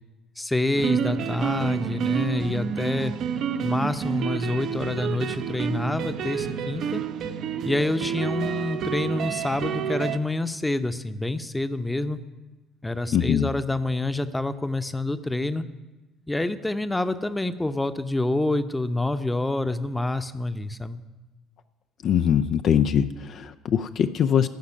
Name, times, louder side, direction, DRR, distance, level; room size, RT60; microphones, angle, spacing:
voice 1, 0.4-3.1 3.6-7.0 7.7-12.2 12.8-15.6 16.3-21.0, left 2 dB, 10° left, 11 dB, 0.8 m, -27 dB
sound 1, 0.7-10.2, right 7 dB, 55° right, 0.7 m, -29 dB
voice 2, 13.1-13.5 22.0-24.5, left 8 dB, 50° left, 9 dB, 0.4 m, -22 dB
16.0 x 5.9 x 8.9 m, 1.2 s
figure-of-eight pair, 55°, 0 cm